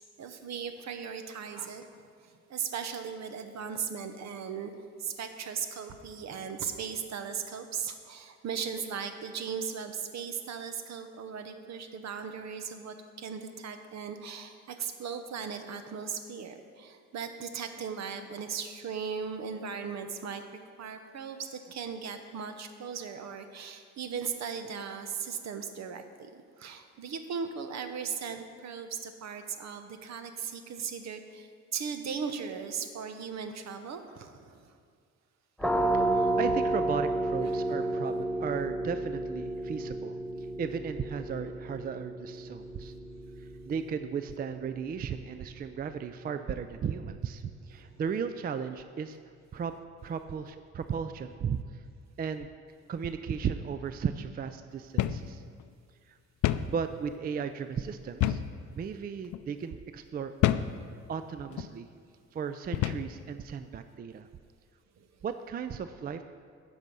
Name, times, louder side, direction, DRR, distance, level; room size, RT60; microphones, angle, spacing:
voice 1, 0.0-2.0 2.2-4.7 5.0-20.5 20.8-26.3 26.6-34.8 36.1-36.3 37.4-38.0 65.0-65.1, right 6 dB, 60° right, 8 dB, 0.9 m, -38 dB
sound 1, 35.6-47.1, right 2 dB, ahead, 0.7 m, -32 dB
voice 2, 35.9-42.9 43.4-49.2 49.5-49.8 50.0-51.8 52.2-52.5 52.9-55.4 56.1-56.2 56.6-58.4 58.8-60.3 61.1-61.9 62.3-64.3 65.2-66.2, right 6 dB, 30° right, 10 dB, 0.4 m, -35 dB
sound 2, 55.0-55.3 55.6-55.7 56.4-56.7 58.2-58.6 59.2-59.4 60.4-60.8 61.5-61.7 62.7-63.1, left 13 dB, 75° left, 0.5 m, -27 dB
9.8 x 5.4 x 6.2 m, 2.1 s
cardioid pair, 90°, 30 cm